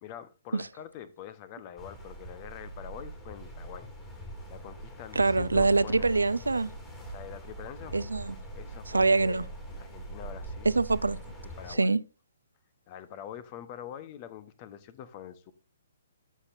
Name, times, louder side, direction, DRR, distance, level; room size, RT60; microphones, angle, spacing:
voice 1, 0.0-3.9 4.5-6.1 7.1-8.0 8.5-9.4 9.8-10.7 11.6-11.9 12.9-15.5, left 10 dB, 35° left, 1.0 m, -44 dB
sound 1, 1.8-11.7, right 1 dB, 15° left, 3.4 m, -42 dB
voice 2, 5.2-6.7 7.9-8.4 8.9-9.4 10.6-11.2 11.8-12.0, right 3 dB, 80° right, 0.6 m, -24 dB
13.0 x 7.1 x 2.6 m
figure-of-eight pair, 130°, 0 cm